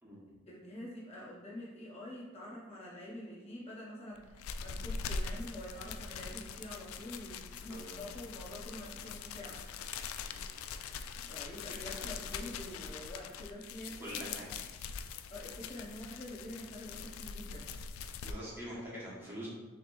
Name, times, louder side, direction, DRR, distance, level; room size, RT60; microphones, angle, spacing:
voice 1, 0.5-9.6 11.3-14.4 15.3-17.7, left 1 dB, 30° left, -5 dB, 0.6 m, -46 dB
sound 1, 4.1-18.3, left 5 dB, 90° left, 0.3 m, -43 dB
voice 2, 7.7-8.0 10.3-10.5 11.8-12.1 14.0-14.5 18.2-19.5, equal, 10° right, -8 dB, 1.4 m, -44 dB
6.4 x 3.0 x 2.6 m, 1.3 s
head